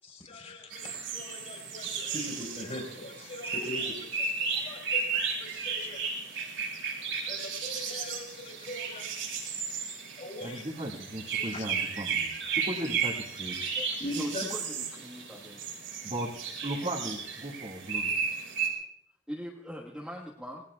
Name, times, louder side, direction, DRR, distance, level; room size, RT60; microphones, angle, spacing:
voice 1, 0.0-6.0 7.3-9.1 10.2-10.7 11.3-11.7 14.0-14.5, left 1 dB, 35° left, 0 dB, 4.2 m, -41 dB
sound 1, 0.7-18.7, right 5 dB, 85° right, 5.3 m, -34 dB
voice 2, 10.4-13.5 16.0-18.1, right 1 dB, 35° right, -2 dB, 2.0 m, -37 dB
voice 3, 13.8-15.6 18.4-18.5 19.3-20.6, equal, 5° right, -5 dB, 1.5 m, -41 dB
26.0 x 19.5 x 2.4 m, 0.71 s
head